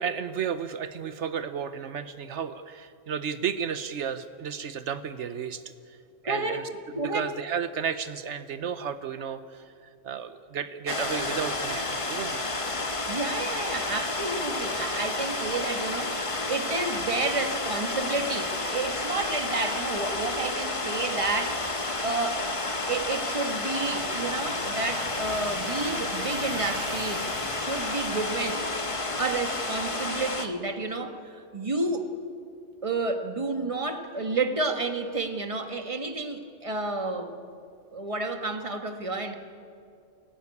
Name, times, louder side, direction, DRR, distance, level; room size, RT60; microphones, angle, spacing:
voice 1, 0.0-6.0 6.2-6.7 7.1-9.7 10.0-12.5, right 7 dB, 80° right, 11 dB, 1.1 m, -33 dB
voice 2, 6.2-6.6 6.9-7.3 13.1-22.5 22.9-28.7 29.2-32.1 32.8-37.3 37.9-39.3, right 3 dB, 30° right, 5 dB, 1.6 m, -30 dB
sound 1, 10.9-30.5, left 2 dB, 30° left, 1.3 m, -31 dB
sound 2, 23.8-30.4, right 5 dB, 65° right, 1.3 m, -44 dB
24.5 x 17.0 x 9.7 m, 2.5 s
omnidirectional pair, 1.2 m